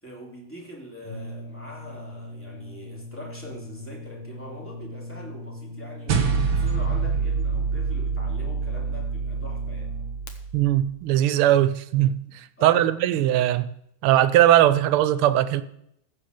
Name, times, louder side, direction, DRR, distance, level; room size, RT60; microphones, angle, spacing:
voice 1, 0.0-6.3 6.5-9.9 12.6-12.9, equal, 5° left, 2.9 m, -43 dB
Brass instrument, 1.0-10.4, left 1 dB, 80° left, 2.1 m, -40 dB
sound 1, 6.1-10.7, right 5 dB, 65° right, 1.9 m, -26 dB
voice 2, 10.5-13.7 14.0-15.6, right 12 dB, 85° right, 1.5 m, -20 dB
15.0 x 5.1 x 6.6 m
omnidirectional pair, 2.4 m